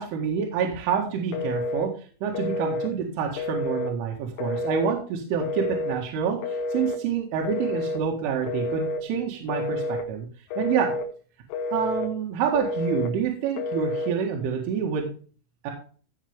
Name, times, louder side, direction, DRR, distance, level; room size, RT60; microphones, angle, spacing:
voice 1, 0.0-1.9 2.2-10.3 10.6-10.9 11.7-15.1 15.6-15.7, right 7 dB, 75° right, 0 dB, 4.2 m, -27 dB
Telephone, 1.3-1.9 2.4-2.9 3.4-3.9 4.4-5.0 5.4-6.0 6.4-7.0 7.5-8.0 8.5-9.0 9.5-10.1 10.5-11.1 11.5-12.1 12.6-13.1 13.6-14.1, left 2 dB, 80° left, 4.0 m, -29 dB
15.5 x 6.7 x 3.5 m, 0.40 s
omnidirectional pair, 5.7 m